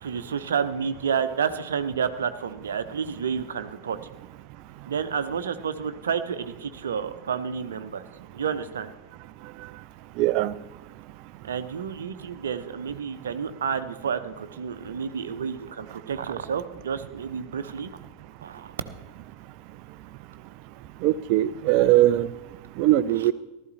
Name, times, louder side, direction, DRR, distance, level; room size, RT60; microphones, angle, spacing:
voice 1, 0.0-4.0 4.9-8.0 8.3-8.9 11.4-17.9 18.4-18.7, right 7 dB, 65° right, 10 dB, 0.9 m, -30 dB
voice 2, 10.2-10.5 21.0-22.3 22.8-23.3, right 14 dB, 45° right, 17 dB, 0.5 m, -20 dB
15.0 x 13.0 x 4.2 m, 1.1 s
figure-of-eight pair, 90°, 0 cm